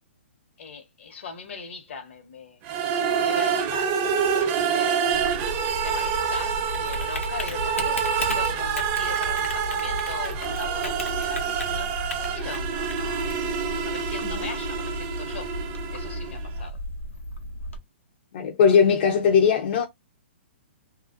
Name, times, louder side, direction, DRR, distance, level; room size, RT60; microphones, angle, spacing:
voice 1, 0.6-2.6 2.9-5.1 5.8-13.4 13.8-15.5 15.9-16.8, left 5 dB, 65° left, 0.9 m, -40 dB
sound 1, 2.6-16.5, right 7 dB, 30° right, 0.4 m, -27 dB
Typing, 5.1-17.8, left 1 dB, 90° left, 0.7 m, -34 dB
voice 2, 18.3-19.8, left 6 dB, 50° left, 0.4 m, -19 dB
2.4 x 2.1 x 2.5 m
hypercardioid pair, 130°, 7 cm